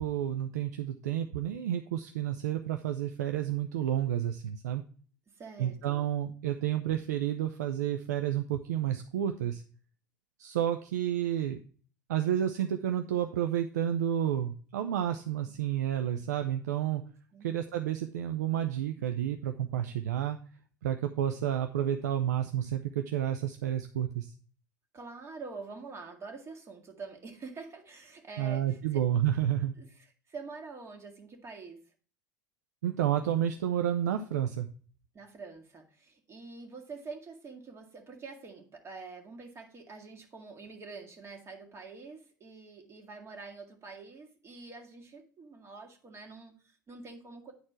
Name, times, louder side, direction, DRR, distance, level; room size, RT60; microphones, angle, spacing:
voice 1, 0.0-4.8 5.6-9.6 10.4-11.6 12.1-17.0 17.4-20.4 20.8-24.3 28.4-29.7 32.8-34.7, right 11 dB, 70° right, 7 dB, 0.5 m, -30 dB
voice 2, 5.4-6.1 17.3-17.5 24.9-29.0 29.8-31.8 35.1-47.5, right 4 dB, 30° right, 2 dB, 1.9 m, -46 dB
9.9 x 4.3 x 4.5 m, 0.42 s
figure-of-eight pair, 75°, 9 cm